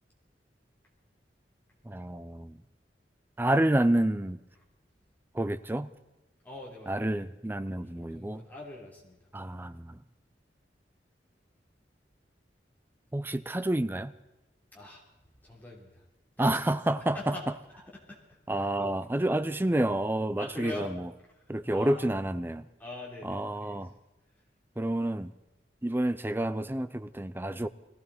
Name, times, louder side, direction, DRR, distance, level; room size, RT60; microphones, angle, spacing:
voice 1, 1.9-2.6 3.4-4.4 5.3-5.9 6.9-8.4 9.3-10.0 13.1-14.1 16.4-17.3 18.5-21.1 21.5-22.7 23.2-23.9 24.8-25.3 25.8-27.7, right 1 dB, 10° right, 0.5 m, -29 dB
voice 2, 6.4-7.1 7.8-9.2 14.7-15.0 15.4-16.0 16.4-16.6 16.9-17.4 18.1-18.7 20.4-20.9 21.5-22.1 22.8-23.8, left 2 dB, 10° left, 3.3 m, -44 dB
21.5 x 16.0 x 4.2 m
head